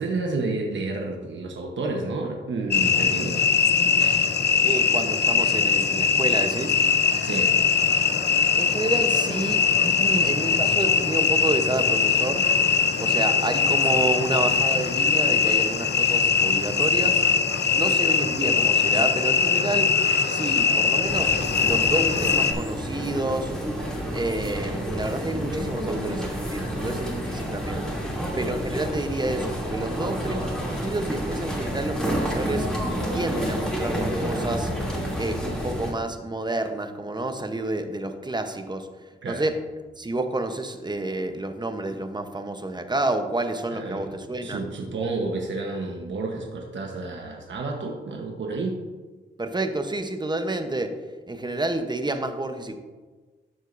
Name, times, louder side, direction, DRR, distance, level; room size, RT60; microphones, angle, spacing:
voice 1, 0.0-3.4 7.2-7.6 28.8-28.9 39.2-39.4 43.7-44.1 44.4-48.8, right 3 dB, 70° right, 1 dB, 1.1 m, -30 dB
sound 1, 2.7-22.5, left 6 dB, 60° left, 0.7 m, -21 dB
voice 2, 4.6-6.8 8.6-12.4 13.0-17.2 17.7-19.9 20.3-21.3 21.6-23.5 24.1-27.8 28.3-32.7 33.1-34.7 35.2-38.9 39.2-39.5 40.0-44.6 49.4-50.9 51.3-52.7, right 2 dB, 20° right, 7 dB, 0.9 m, -29 dB
sound 2, 21.0-35.9, equal, 5° left, 2.7 m, -29 dB
12.5 x 6.2 x 2.6 m, 1.3 s
cardioid pair, 70°, 20 cm